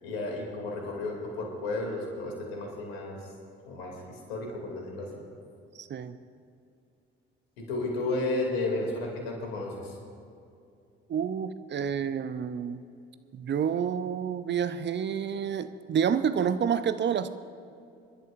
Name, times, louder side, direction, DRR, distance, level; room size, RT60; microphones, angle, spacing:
voice 1, 0.0-3.2 3.6-5.2 7.6-10.0, left 2 dB, 75° left, 0 dB, 2.9 m, -33 dB
voice 2, 5.8-6.2 11.1-12.8 13.3-17.3, right 7 dB, 35° right, 12 dB, 0.7 m, -29 dB
27.0 x 12.0 x 2.6 m, 2.6 s
figure-of-eight pair, 50°, 30 cm